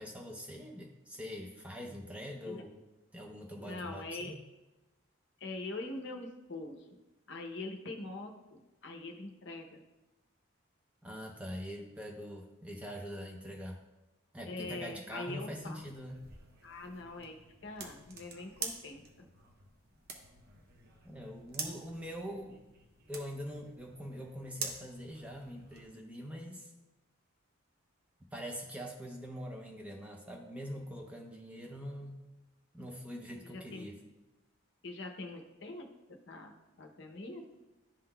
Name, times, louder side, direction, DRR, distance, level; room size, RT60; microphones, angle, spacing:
voice 1, 0.0-2.8 3.1-4.3 11.0-13.8 14.3-16.3 21.0-22.6 23.1-26.7 28.3-32.2 32.7-34.0, equal, 5° right, 0 dB, 0.5 m, -43 dB
voice 2, 3.6-4.3 5.4-6.8 7.3-9.8 14.5-15.8 16.6-19.3 33.4-33.9 34.8-35.9 36.3-36.5 36.8-37.4, left 2 dB, 55° left, 3 dB, 0.7 m, -43 dB
sound 1, 15.5-25.9, right 4 dB, 45° right, 0.8 m, -47 dB
11.0 x 3.8 x 2.2 m, 1.0 s
head